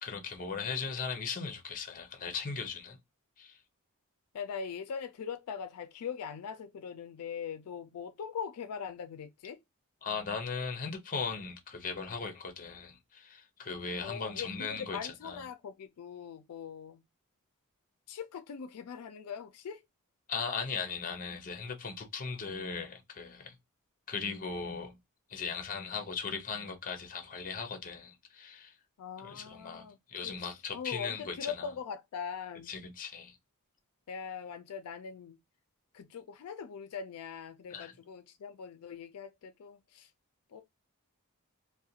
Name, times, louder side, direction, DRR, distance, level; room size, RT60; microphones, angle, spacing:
voice 1, 0.0-3.0 3.4-3.6 10.0-15.4 20.3-23.5 24.1-25.0 25.3-28.7 29.2-31.7 32.7-33.4 37.7-37.9, left 5 dB, 40° left, 0.6 m, -38 dB
voice 2, 4.3-9.6 14.0-17.0 18.1-19.8 29.0-30.0 30.2-32.7 34.1-35.4 35.9-40.1 40.5-40.6, left 7 dB, 85° left, 0.4 m, -41 dB
2.4 x 2.1 x 2.6 m
head